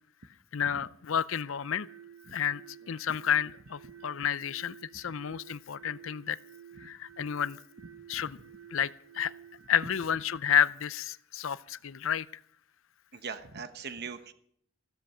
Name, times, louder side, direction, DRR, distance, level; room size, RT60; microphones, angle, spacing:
voice 1, 0.5-1.9 2.3-2.6 2.9-6.4 6.8-7.6 8.1-8.4 8.7-8.9 9.1-9.3 9.7-12.3, left 8 dB, 65° left, 18 dB, 0.6 m, -30 dB
sound 1, 1.4-10.0, right 9 dB, 70° right, 4.3 m, -52 dB
voice 2, 13.1-14.3, right 6 dB, 50° right, 10 dB, 1.1 m, -40 dB
15.5 x 13.5 x 5.6 m, 0.65 s
head